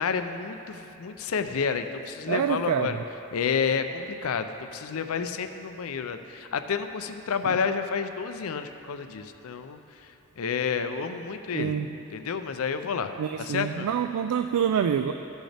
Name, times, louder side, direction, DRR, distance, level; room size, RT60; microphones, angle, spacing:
voice 1, 0.0-3.0 3.3-11.8 12.1-13.1 13.4-13.9, left 6 dB, 65° left, 8 dB, 0.5 m, -30 dB
voice 2, 2.3-3.0 7.5-7.6 11.5-12.0 13.2-15.1, right 8 dB, 90° right, 8 dB, 0.3 m, -26 dB
14.5 x 6.3 x 3.4 m, 2.9 s
head